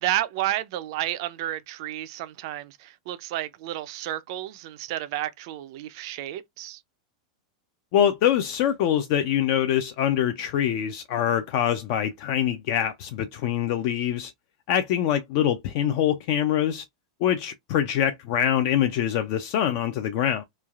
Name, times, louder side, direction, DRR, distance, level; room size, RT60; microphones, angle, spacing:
voice 1, 0.0-6.8, right 13 dB, 45° right, 0.4 m, -31 dB
voice 2, 7.9-14.3 14.7-16.8 17.2-20.4, left 10 dB, 40° left, 0.3 m, -24 dB
3.1 x 2.3 x 2.3 m
supercardioid pair, 175°, 3 cm